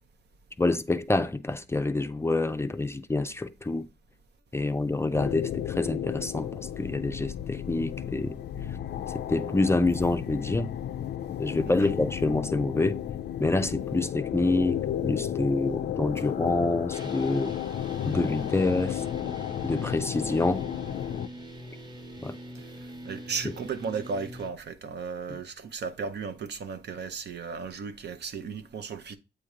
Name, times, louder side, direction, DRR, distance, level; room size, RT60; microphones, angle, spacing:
voice 1, 0.6-3.9 4.5-6.5 6.8-8.4 9.1-10.7 11.4-13.0 13.4-17.6 18.1-19.0 19.6-20.7 22.2-22.4, left 2 dB, 15° left, 0.4 m, -27 dB
sound 1, 5.1-21.3, left 10 dB, 80° left, 0.4 m, -33 dB
sound 2, 16.9-24.5, right 1 dB, 25° right, 1.0 m, -43 dB
voice 2, 23.0-29.2, right 5 dB, 75° right, 0.8 m, -35 dB
8.3 x 2.9 x 4.9 m
wide cardioid pair, 150°, 18 cm